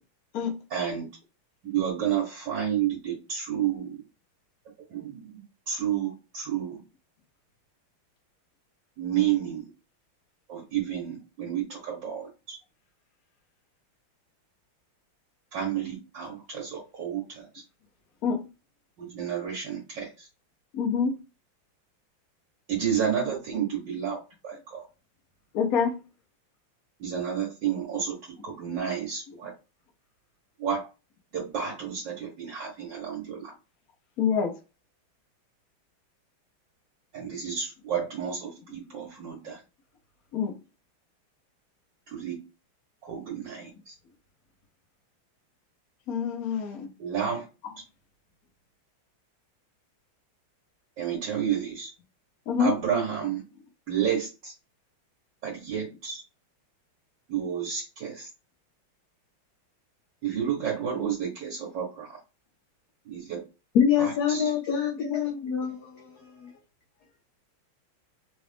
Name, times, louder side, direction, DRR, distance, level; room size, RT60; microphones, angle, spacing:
voice 1, 0.7-1.1 1.6-4.0 4.9-6.8 9.0-9.7 10.5-12.6 15.5-17.5 19.0-20.3 22.7-24.8 27.0-29.5 30.6-30.9 31.3-33.5 37.1-39.6 42.1-42.4 43.0-43.9 47.0-47.5 51.0-51.9 52.6-53.4 53.9-54.5 55.4-56.2 57.3-58.3 60.2-62.2 63.1-63.4 64.0-64.5, right 8 dB, 60° right, 1.7 m, -31 dB
voice 2, 20.7-21.2 25.5-26.0 34.2-34.6 40.3-40.5 46.1-46.9 52.5-52.8, left 6 dB, 55° left, 1.1 m, -26 dB
voice 3, 63.7-66.5, left 8 dB, 85° left, 0.8 m, -26 dB
4.0 x 2.5 x 3.3 m
omnidirectional pair, 2.3 m